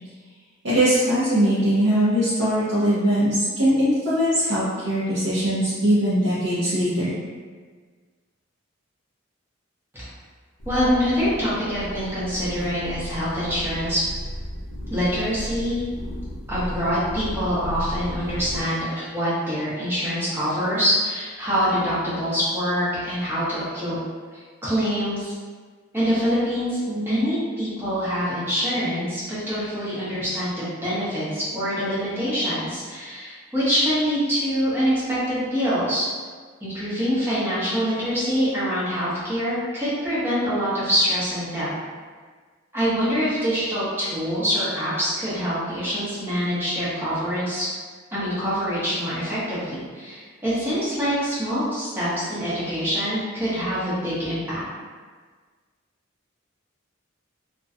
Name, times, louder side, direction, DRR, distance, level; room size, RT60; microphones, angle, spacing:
voice 1, 0.6-7.1, equal, 65° right, -12 dB, 0.7 m, -21 dB
sound 1, 10.6-18.6, equal, 65° left, 0.5 m, -34 dB
voice 2, 10.7-14.0 14.9-15.8 16.5-24.0 24.3-25.3 25.9-36.1 36.6-41.7 42.7-47.7 48.1-54.6, equal, 10° right, -11 dB, 0.8 m, -25 dB
2.5 x 2.2 x 2.4 m, 1.5 s
head